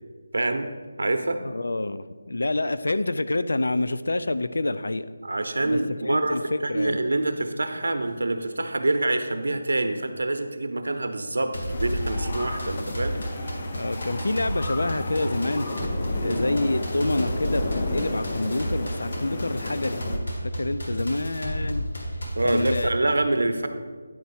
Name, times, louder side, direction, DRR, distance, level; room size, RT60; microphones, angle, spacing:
voice 1, 0.3-0.7 1.0-1.4 5.2-13.2 16.2-16.4 22.4-23.7, right 2 dB, 85° right, 7 dB, 0.8 m, -26 dB
voice 2, 1.4-5.1 5.6-7.0 13.7-15.7 16.2-20.0 20.4-21.9 22.4-22.9, left 2 dB, 85° left, 13 dB, 0.3 m, -27 dB
sound 1, 11.5-22.8, equal, 50° left, 1.5 m, -31 dB
sound 2, 11.7-20.2, left 2 dB, 20° left, 0.4 m, -33 dB
9.2 x 4.6 x 4.2 m, 1.5 s
figure-of-eight pair, 180°, 0 cm